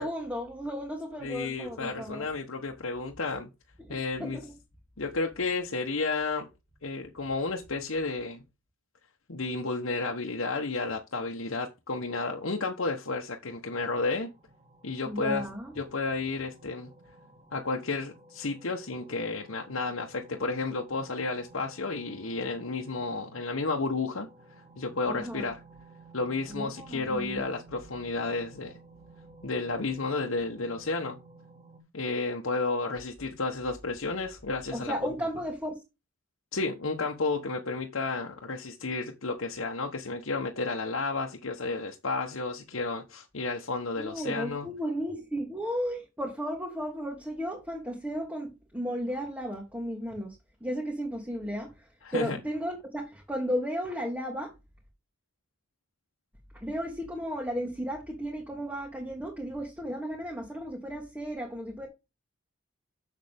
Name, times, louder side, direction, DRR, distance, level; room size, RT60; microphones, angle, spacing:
voice 1, 0.0-2.3 3.8-4.5 15.1-15.7 25.1-25.5 26.5-27.4 34.7-35.7 44.0-54.5 56.5-61.9, equal, 5° right, 1.6 m, -34 dB
voice 2, 1.2-3.5 3.9-4.4 5.0-6.5 6.8-8.4 9.3-14.3 14.8-15.4 15.8-16.9 17.5-24.3 24.8-25.6 26.1-28.7 29.4-31.2 31.9-34.9 36.5-44.7 52.0-52.4, left 3 dB, 70° left, 1.1 m, -32 dB
sound 1, 14.2-31.8, right 2 dB, 30° right, 1.8 m, -54 dB
7.2 x 6.5 x 3.5 m
head